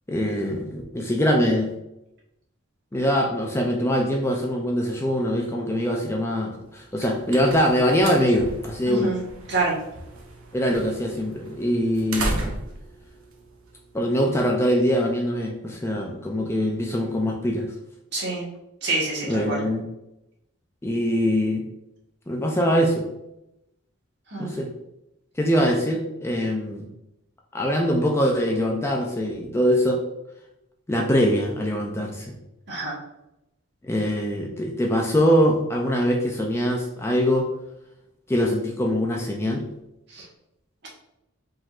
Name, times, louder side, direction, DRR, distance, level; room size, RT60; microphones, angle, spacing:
voice 1, 0.1-1.7 2.9-9.1 10.5-12.6 13.9-17.7 19.3-19.8 20.8-21.6 22.3-23.1 24.4-24.7 25.4-26.9 27.5-30.0 30.9-32.3 33.8-37.5 38.3-39.6, equal, 10° left, 0 dB, 0.4 m, -23 dB
sound 1, 6.8-14.3, right 2 dB, 85° right, 0.8 m, -35 dB
voice 2, 8.9-9.2 9.5-9.8 18.1-18.4 18.8-19.6 24.3-24.6 32.7-33.0 40.1-40.2, right 3 dB, 55° right, -4 dB, 1.3 m, -26 dB
5.0 x 3.7 x 2.5 m, 0.89 s
head